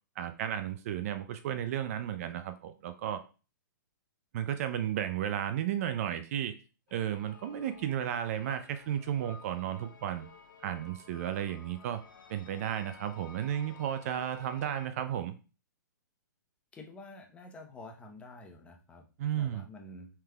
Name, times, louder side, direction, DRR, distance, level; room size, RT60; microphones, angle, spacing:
voice 1, 0.2-3.2 4.3-6.6 6.9-10.3 10.6-12.0 12.3-15.3 19.2-19.7, right 10 dB, 45° right, 10 dB, 0.4 m, -33 dB
sound 1, 6.9-14.9, left 5 dB, 75° left, 0.7 m, -54 dB
voice 2, 16.7-19.1 19.3-20.1, left 2 dB, 10° left, 3 dB, 0.7 m, -49 dB
5.7 x 3.4 x 2.2 m, 0.34 s
hypercardioid pair, 140°, 11 cm